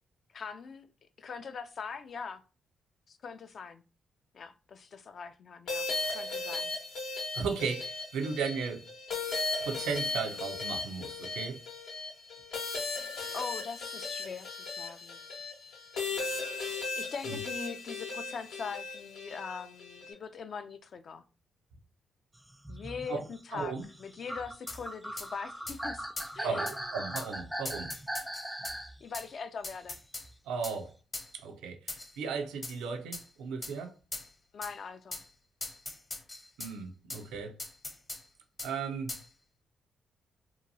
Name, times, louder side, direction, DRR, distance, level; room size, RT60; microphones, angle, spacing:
voice 1, 0.3-0.9 1.2-2.4 3.1-3.8 4.3-6.7 13.3-15.2 17.0-21.2 22.7-26.1 26.3-26.6 29.0-30.0 34.5-35.2, left 5 dB, 60° left, 0.3 m, -42 dB
sound 1, 5.7-20.1, left 3 dB, 80° left, 0.8 m, -37 dB
voice 2, 7.3-8.9 9.6-11.6 17.3-17.4 23.1-23.2 23.5-23.9 26.4-27.9 30.5-30.9 31.3-33.9 36.6-37.6 38.6-39.2, right 5 dB, 80° right, 0.4 m, -36 dB
sound 2, 22.5-29.0 30.2-30.3, right 1 dB, 10° right, 0.4 m, -39 dB
sound 3, 24.7-24.8 25.2-25.3 25.7-25.8 26.2-26.3 26.7-26.8 27.2-27.3 27.7-28.8 29.1-29.3 29.6-30.3 30.6-30.8 31.1-31.3 31.9-32.2 32.6-32.8 33.1-33.3 33.6-33.8 34.1-34.3 34.6-34.7 35.1-35.3 35.6-36.7 37.1-37.2 37.6-38.2 38.6-38.7 39.1-39.3, left 2 dB, 35° left, 0.7 m, -40 dB
2.8 x 2.2 x 2.6 m
supercardioid pair, 55°, 0 cm